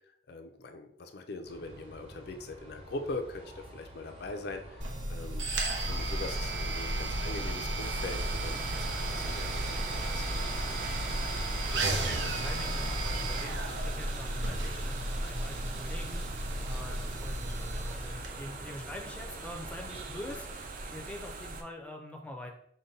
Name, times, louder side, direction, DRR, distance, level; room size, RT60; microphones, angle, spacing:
voice 1, 0.3-10.5, left 2 dB, 60° left, 6 dB, 0.4 m, -42 dB
sound 1, 1.4-20.6, right 1 dB, 35° right, 1.0 m, -49 dB
sound 2, 4.8-18.3, right 1 dB, 90° right, 0.7 m, -33 dB
sound 3, 7.8-21.6, right 3 dB, 50° right, 0.5 m, -42 dB
voice 2, 11.7-22.5, left 1 dB, 5° left, 1 dB, 0.5 m, -45 dB
5.1 x 2.2 x 4.0 m, 0.69 s
head